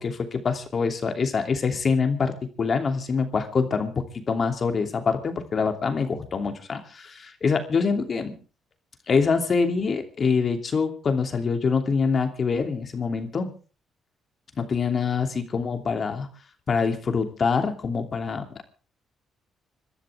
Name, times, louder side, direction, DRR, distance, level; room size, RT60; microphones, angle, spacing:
voice 1, 0.0-2.3 2.6-8.3 9.1-13.5 14.6-16.3 16.7-18.4, left 5 dB, 45° left, 6 dB, 2.9 m, -25 dB
26.5 x 13.0 x 3.6 m, 0.35 s
cardioid pair, 90°, 0 cm